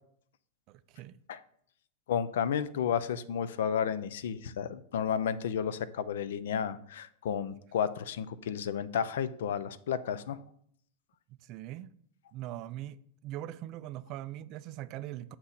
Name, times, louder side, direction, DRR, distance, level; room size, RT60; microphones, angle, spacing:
voice 1, 0.7-1.2 11.3-11.9 12.3-13.0 13.2-15.4, right 13 dB, 40° right, 0.3 m, -41 dB
voice 2, 2.1-10.4, left 8 dB, 60° left, 0.4 m, -32 dB
7.4 x 2.9 x 6.1 m
figure-of-eight pair, 90°, 0 cm